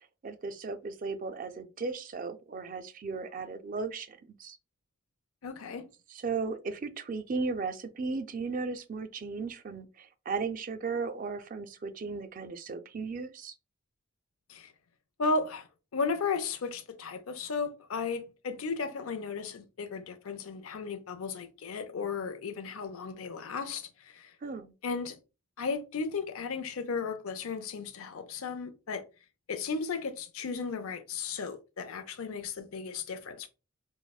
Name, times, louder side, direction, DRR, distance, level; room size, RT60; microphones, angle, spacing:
voice 1, 0.0-4.6 6.1-13.5 24.4-24.7, right 4 dB, 40° right, 0.3 m, -36 dB
voice 2, 5.4-5.9 14.5-14.7 15.2-15.7 15.9-24.3 24.8-25.2 25.6-29.0 29.5-33.5, left 4 dB, 80° left, 0.5 m, -35 dB
4.7 x 2.0 x 2.3 m
head